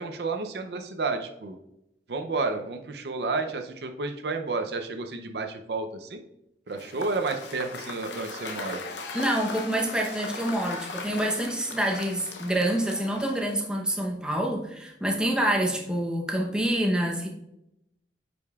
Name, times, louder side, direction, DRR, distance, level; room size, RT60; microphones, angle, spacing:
voice 1, 0.0-1.6 2.1-6.2 6.7-8.8, right 3 dB, 65° right, 6 dB, 0.6 m, -31 dB
Cheering / Applause / Crowd, 6.7-13.8, left 3 dB, 85° left, 0.7 m, -39 dB
voice 2, 9.1-17.3, right 1 dB, 5° right, 0 dB, 0.8 m, -27 dB
9.2 x 5.2 x 2.4 m, 0.84 s
head